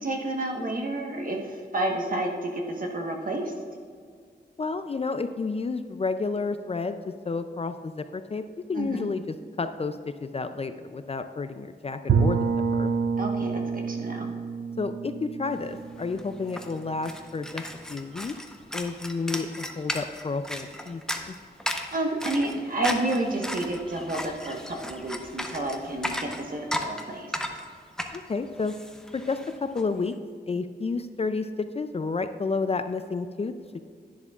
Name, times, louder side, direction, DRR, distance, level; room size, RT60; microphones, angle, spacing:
voice 1, 0.0-3.5 8.7-9.1 13.2-14.3 21.9-27.3, right 2 dB, 50° right, 1 dB, 1.2 m, -30 dB
voice 2, 4.6-7.0 7.3-8.4 8.7-12.5 12.7-12.9 14.8-18.3 18.7-21.3 28.1-28.7 29.1-30.2 30.5-33.8, left 4 dB, 35° left, 9 dB, 0.4 m, -31 dB
Bowed string instrument, 12.1-16.9, right 5 dB, 75° right, 0.6 m, -28 dB
sound 1, 15.7-15.8 16.0-29.8, left 1 dB, 5° left, 0.7 m, -35 dB
10.5 x 10.5 x 2.4 m, 2.1 s
wide cardioid pair, 125°, 18 cm